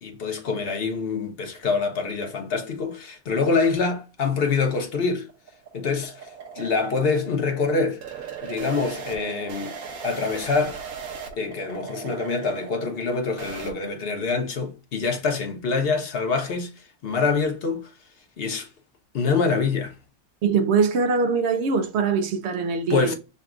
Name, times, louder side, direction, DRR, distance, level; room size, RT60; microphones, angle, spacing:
voice 1, 0.0-5.3 5.7-8.0 8.4-9.8 10.0-10.8 11.3-16.7 17.0-17.9 18.4-18.7 19.1-19.9 22.9-23.1, left 4 dB, 50° left, 0.9 m, -25 dB
sound 1, 4.7-13.7, right 6 dB, 80° right, 1.3 m, -38 dB
voice 2, 20.4-23.1, right 5 dB, 65° right, 0.7 m, -22 dB
6.5 x 2.3 x 2.5 m
omnidirectional pair, 1.5 m